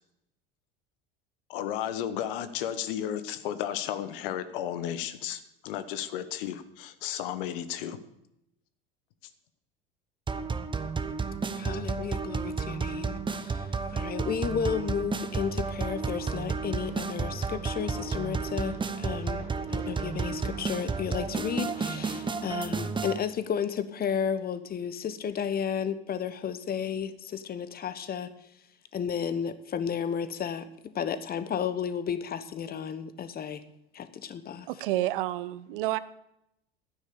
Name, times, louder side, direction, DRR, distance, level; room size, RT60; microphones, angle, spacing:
voice 1, 1.5-8.0, left 10 dB, 65° left, 12 dB, 1.2 m, -33 dB
sound 1, 10.3-23.2, right 5 dB, 15° right, 1.0 m, -32 dB
voice 2, 11.6-28.3 28.9-30.7 30.9-33.6 33.9-34.7, left 8 dB, 30° left, 13 dB, 1.2 m, -33 dB
sound 2, 15.3-22.8, left 1 dB, 85° left, 3.8 m, -50 dB
voice 3, 34.7-36.0, right 15 dB, 60° right, 17 dB, 0.7 m, -29 dB
12.0 x 9.6 x 6.9 m, 0.83 s
figure-of-eight pair, 70°, 30 cm